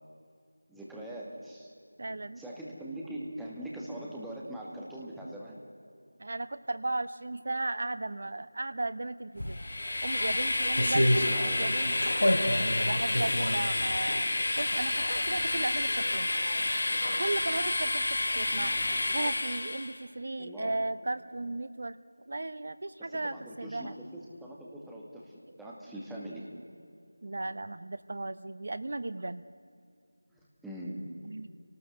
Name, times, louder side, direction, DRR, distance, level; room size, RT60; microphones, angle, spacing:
voice 1, 0.7-1.7 2.4-5.6 11.0-11.7 15.3-15.4 18.5-18.8 20.4-20.8 23.0-26.5 30.3-31.1, right 1 dB, ahead, -5 dB, 1.9 m, -42 dB
voice 2, 2.0-2.4 6.2-9.6 10.0-11.3 11.5-12.1 12.6-14.3 14.6-16.3 17.2-18.1 18.3-18.7 19.1-22.0 22.3-23.9 27.2-29.5 31.2-31.5, right 2 dB, 45° right, 14 dB, 0.8 m, -35 dB
sound 1, 9.4-9.5 10.2-11.3 12.0-14.2 14.6-15.0 15.4-15.5, equal, 70° left, 3.4 m, -28 dB
Train, 9.5-20.0, left 2 dB, 40° left, 1.8 m, -30 dB
27.0 x 19.0 x 8.0 m, 2.4 s
figure-of-eight pair, 170°, 0 cm